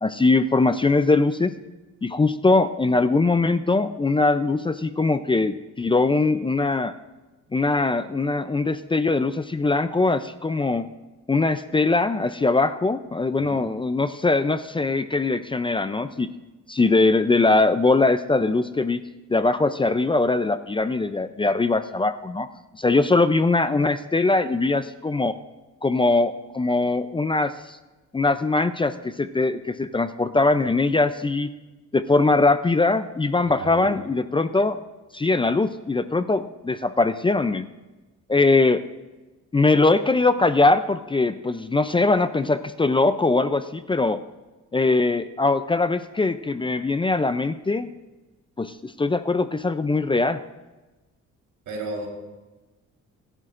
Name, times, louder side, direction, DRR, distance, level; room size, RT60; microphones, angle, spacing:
voice 1, 0.0-1.5 2.0-6.9 7.5-10.9 11.3-16.3 16.7-19.0 19.3-22.5 22.7-25.4 25.8-27.8 28.1-31.5 31.9-34.8 35.1-37.7 38.3-38.8 39.5-44.2 44.7-47.9 48.6-50.4, left 3 dB, 15° left, 11 dB, 0.5 m, -21 dB
voice 2, 33.4-34.0 51.7-52.1, right 2 dB, 85° right, 0 dB, 3.9 m, -34 dB
23.5 x 11.0 x 2.5 m, 1.1 s
cardioid pair, 90°, 30 cm